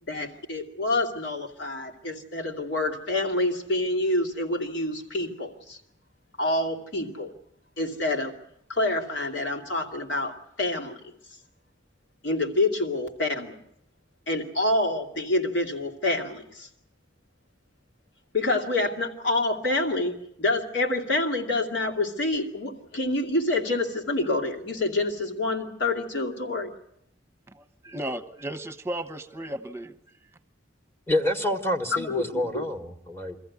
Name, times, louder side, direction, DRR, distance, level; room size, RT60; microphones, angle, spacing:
voice 1, 0.0-5.8 6.4-7.3 7.8-8.3 8.7-10.9 12.2-13.5 14.3-16.7 18.3-26.7 31.9-32.6, left 2 dB, 80° left, 2 dB, 2.6 m, -27 dB
voice 2, 27.5-30.0, right 1 dB, 15° right, 9 dB, 1.0 m, -35 dB
voice 3, 31.1-33.4, left 1 dB, 15° left, 7 dB, 1.4 m, -27 dB
24.0 x 14.5 x 9.5 m, 0.75 s
head